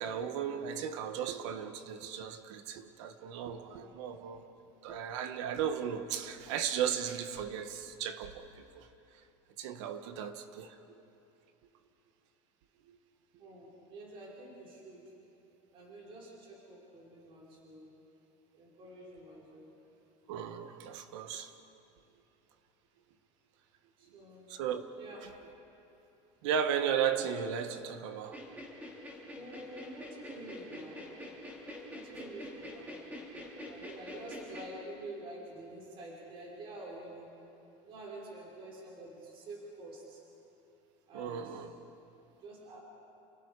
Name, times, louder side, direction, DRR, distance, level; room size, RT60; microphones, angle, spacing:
voice 1, 0.0-4.4 4.8-8.9 9.6-10.8 12.9-13.0 20.3-21.5 24.5-24.8 25.2-25.3 26.4-28.4 41.1-41.7, right 8 dB, 70° right, 1.7 m, -35 dB
voice 2, 13.4-15.0 15.7-17.9 18.6-19.7 24.0-24.5 25.0-25.2 29.3-31.0 31.9-33.0 33.7-37.3 37.8-40.2 41.1-41.6 42.4-42.8, right 1 dB, 35° right, 5.3 m, -48 dB
sound 1, 28.2-34.7, left 1 dB, 10° right, 3.8 m, -45 dB
30.0 x 29.5 x 5.0 m
cardioid pair, 170°, 16 cm